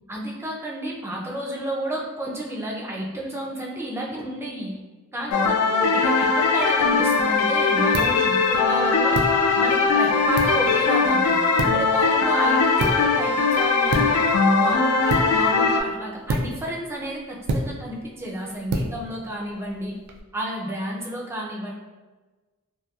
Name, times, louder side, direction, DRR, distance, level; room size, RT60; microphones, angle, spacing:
voice 1, 0.1-4.8 5.1-9.2 9.6-14.2 14.5-20.0 20.3-21.7, right 1 dB, 10° right, -2 dB, 0.3 m, -31 dB
sound 1, 5.3-15.8, left 4 dB, 85° left, 0.3 m, -20 dB
sound 2, 6.7-20.2, right 1 dB, 85° right, 0.3 m, -32 dB
2.8 x 2.2 x 2.2 m, 1.2 s
head